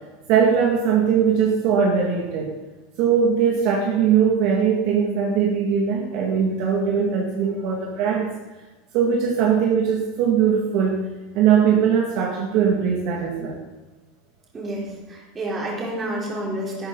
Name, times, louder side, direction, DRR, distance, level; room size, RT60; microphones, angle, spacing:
voice 1, 0.3-2.5 3.0-8.3 8.9-11.0 11.3-13.6, right 7 dB, 45° right, -2 dB, 2.2 m, -20 dB
voice 2, 14.5-16.9, right 1 dB, 15° right, -4 dB, 3.9 m, -29 dB
14.0 x 12.5 x 4.1 m, 1.2 s
supercardioid pair, 170°, 0 cm